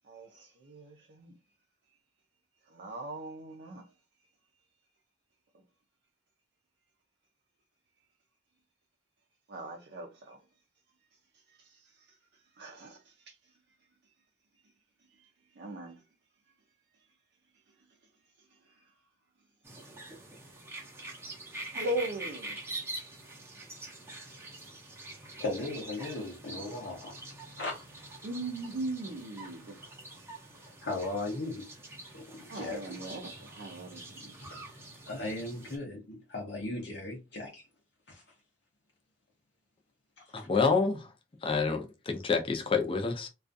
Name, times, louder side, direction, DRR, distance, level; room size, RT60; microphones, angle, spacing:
voice 1, 0.1-1.3 2.7-3.8 9.5-10.4 11.5-11.9 12.6-13.3 15.2-15.3 15.6-16.0 21.7-22.6 28.2-29.8 32.5-34.4, right 1 dB, 60° right, 0.5 m, -39 dB
sound 1, 19.6-35.8, right 2 dB, 15° right, 0.6 m, -45 dB
voice 2, 25.4-27.1 27.6-27.7 28.0-28.1 30.6-31.6 32.1-32.9 34.4-37.6 38.1-38.2 40.4-40.5, left 2 dB, 65° left, 0.7 m, -37 dB
voice 3, 40.3-41.1 41.4-43.3, left 4 dB, 30° left, 0.5 m, -28 dB
2.4 x 2.3 x 2.5 m
head